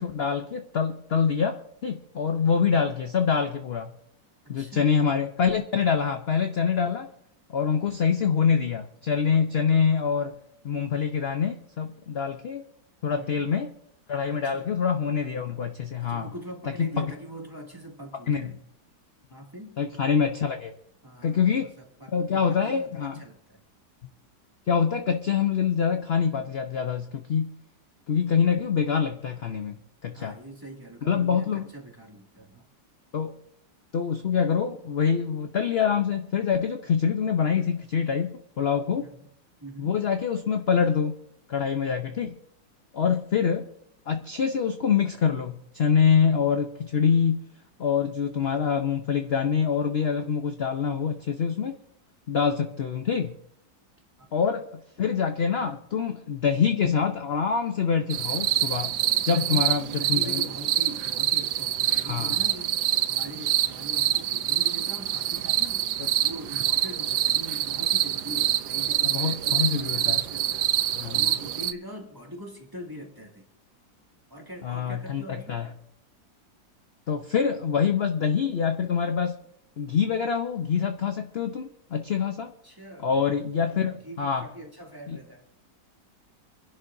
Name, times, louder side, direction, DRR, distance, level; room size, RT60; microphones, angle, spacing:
voice 1, 0.0-3.9 4.5-7.1 7.5-10.3 10.6-12.6 13.0-13.7 14.1-16.3 16.8-17.1 18.3-18.5 19.8-20.7 21.2-21.7 22.1-23.2 24.7-27.5 28.1-29.8 30.0-30.3 31.0-31.7 33.1-33.3 33.9-39.1 39.8-41.2 41.5-42.4 42.9-43.7 44.1-47.5 47.8-51.7 52.3-53.4 54.3-58.9 59.2-60.4 62.0-62.4 69.1-70.2 71.0-71.3 74.6-75.7 77.1-79.4 79.8-82.5 83.0-84.4 85.1-85.2, left 6 dB, 55° left, 6 dB, 0.7 m, -25 dB
voice 2, 4.6-4.9 13.1-13.4 14.3-14.7 16.0-18.6 19.3-19.8 21.0-23.6 30.1-32.6 39.0-39.3 39.6-39.9 43.0-43.3 54.2-54.4 59.3-62.8 63.1-65.8 66.2-73.5 74.3-75.6 82.6-85.4, right 1 dB, 10° right, 0 dB, 2.2 m, -42 dB
sound 1, 58.1-71.7, right 13 dB, 85° right, 1.4 m, -26 dB
27.5 x 11.0 x 2.7 m, 0.71 s
omnidirectional pair, 2.0 m